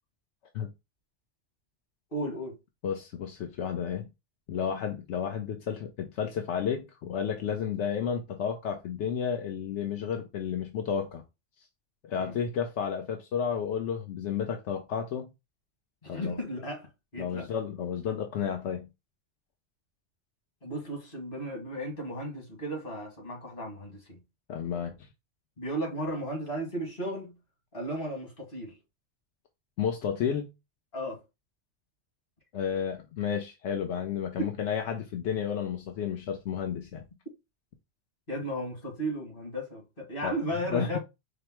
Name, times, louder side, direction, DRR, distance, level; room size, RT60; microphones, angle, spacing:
voice 1, 2.1-2.6 12.1-12.4 16.0-16.9 17.1-17.5 20.6-24.2 25.6-27.4 27.7-28.8 30.9-31.2 38.3-41.0, equal, 55° left, 2.0 m, -35 dB
voice 2, 2.8-4.1 4.5-11.2 12.0-15.3 16.1-16.4 17.2-18.9 24.5-25.1 29.8-30.5 32.5-37.0 40.2-40.4 40.7-41.0, left 7 dB, 85° left, 1.0 m, -32 dB
4.8 x 2.0 x 4.4 m
omnidirectional pair, 1.1 m